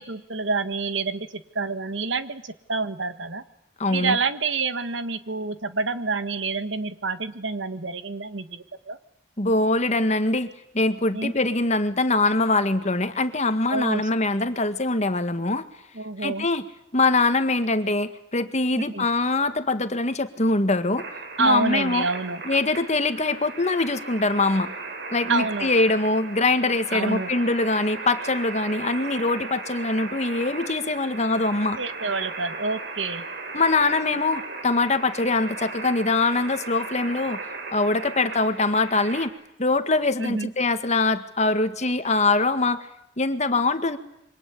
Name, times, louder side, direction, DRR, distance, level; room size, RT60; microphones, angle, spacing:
voice 1, 0.0-3.4 3.9-9.0 11.1-11.3 13.7-14.0 15.9-16.5 18.8-19.0 21.4-22.4 25.3-25.7 26.9-27.3 31.8-33.2 40.2-40.5, right 4 dB, 85° right, 11 dB, 1.6 m, -28 dB
voice 2, 3.8-4.2 9.4-10.5 10.7-15.6 16.2-16.6 16.9-21.1 21.4-22.1 22.5-24.7 25.1-31.8 33.5-39.3 39.6-42.8 43.2-44.0, left 3 dB, 40° left, 9 dB, 1.8 m, -23 dB
sound 1, 21.0-39.3, right 3 dB, 65° right, 5.4 m, -36 dB
27.0 x 24.5 x 8.5 m, 0.79 s
head